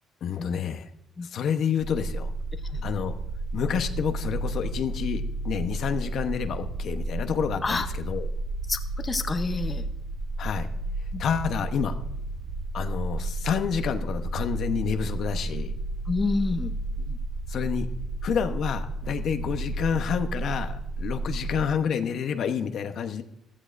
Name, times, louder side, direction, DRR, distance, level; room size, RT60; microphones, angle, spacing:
voice 1, 0.2-0.9 1.2-2.3 2.8-3.1 3.5-8.3 10.4-10.7 11.2-12.0 12.7-15.7 17.5-17.9 18.2-23.2, left 7 dB, 60° left, 7 dB, 0.9 m, -29 dB
sound 1, 1.8-21.6, right 2 dB, 75° right, 2.6 m, -32 dB
voice 2, 8.7-9.8 11.1-11.2 16.1-17.2, left 4 dB, 30° left, 7 dB, 0.8 m, -29 dB
15.0 x 13.0 x 2.6 m, 0.79 s
cardioid pair, 105°, 0 cm